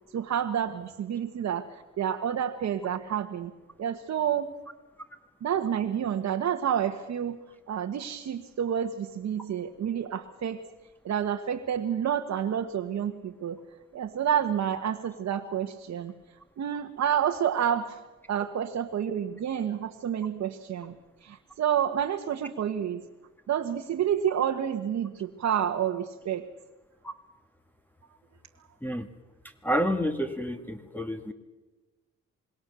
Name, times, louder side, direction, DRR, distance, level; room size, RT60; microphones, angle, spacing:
voice 1, 0.1-3.5 3.8-4.5 5.4-10.6 11.0-13.6 13.9-16.1 16.6-20.9 21.2-23.0 23.5-26.5, right 9 dB, 60° right, 3 dB, 1.4 m, -29 dB
voice 2, 29.6-31.3, equal, 5° left, 7 dB, 1.7 m, -29 dB
26.0 x 21.0 x 6.9 m, 1.2 s
cardioid pair, 90°, 30 cm